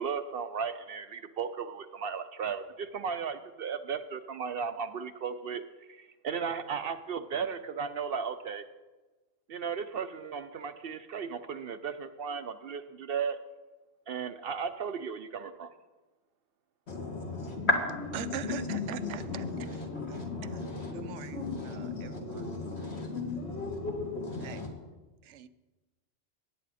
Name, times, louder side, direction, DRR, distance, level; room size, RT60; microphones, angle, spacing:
voice 1, 0.0-5.6 5.9-8.6 9.5-13.4 14.1-15.7, right 6 dB, 60° right, 10 dB, 0.7 m, -35 dB
voice 2, 16.9-24.7, left 3 dB, 65° left, 0 dB, 2.3 m, -34 dB
voice 3, 18.1-19.4 20.1-20.2 20.5-20.6 20.9-22.4 22.8-22.9 24.4-24.6 25.2-25.5, right 10 dB, 85° right, 13 dB, 1.0 m, -41 dB
18.5 x 8.4 x 4.1 m, 1.2 s
omnidirectional pair, 1.2 m